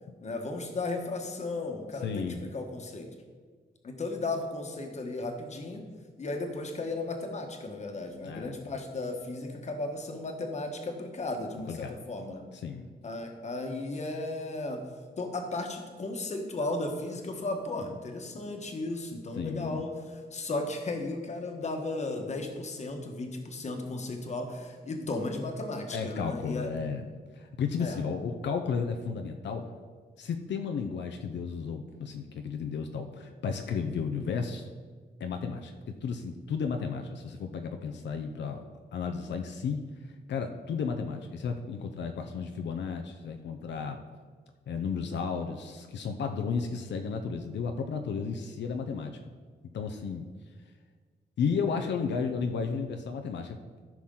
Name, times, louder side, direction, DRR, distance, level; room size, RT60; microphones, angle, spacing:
voice 1, 0.2-3.1 3.8-5.8 6.2-12.4 13.0-14.8 15.2-19.9 20.3-26.7 27.8-28.0, left 2 dB, 40° left, 4 dB, 1.3 m, -35 dB
voice 2, 2.0-2.4 8.2-8.6 11.7-12.0 12.5-12.9 19.4-19.8 25.9-27.1 27.3-29.7 30.2-34.7 35.2-38.6 38.9-44.0 44.7-49.1 49.7-50.3 51.4-53.6, left 5 dB, 85° left, 5 dB, 0.7 m, -33 dB
14.5 x 6.1 x 3.8 m, 1.5 s
wide cardioid pair, 150°, 18 cm